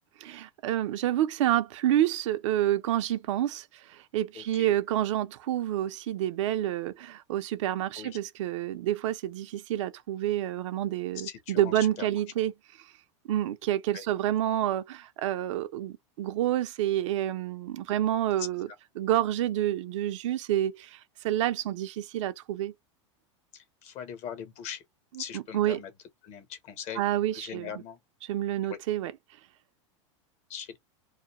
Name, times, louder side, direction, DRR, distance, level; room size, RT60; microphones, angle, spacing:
voice 1, 0.2-12.5 13.3-18.7 19.0-22.7 25.3-25.8 27.0-27.7 28.2-29.1, right 12 dB, 75° right, 0.6 m, -28 dB
voice 2, 4.3-4.8 8.0-8.2 11.1-12.1 13.9-14.0 18.4-18.5 23.5-24.8 25.2-25.9 26.2-27.0 27.3-28.0 28.6-28.8 30.5-30.8, left 8 dB, 45° left, 0.9 m, -40 dB
2.3 x 2.2 x 2.9 m
supercardioid pair, 125°, 16 cm